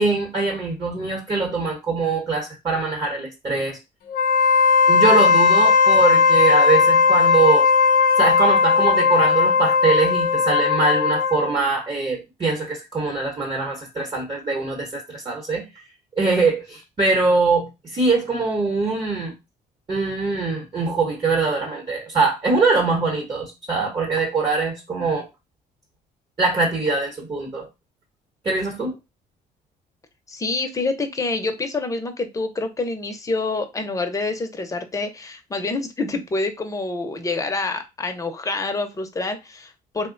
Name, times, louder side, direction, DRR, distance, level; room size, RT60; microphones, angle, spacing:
voice 1, 0.0-3.8 4.9-7.7 8.2-15.6 16.2-19.3 19.9-25.3 26.4-27.7 28.4-28.9, right 3 dB, 30° right, 0 dB, 1.0 m, -22 dB
Wind instrument woodwind instrument, 4.1-11.6, left 5 dB, 60° left, 0.7 m, -17 dB
voice 2, 30.3-40.1, left 3 dB, 20° left, 6 dB, 0.6 m, -27 dB
2.9 x 2.1 x 3.8 m, 0.24 s
cardioid pair, 110°, 17 cm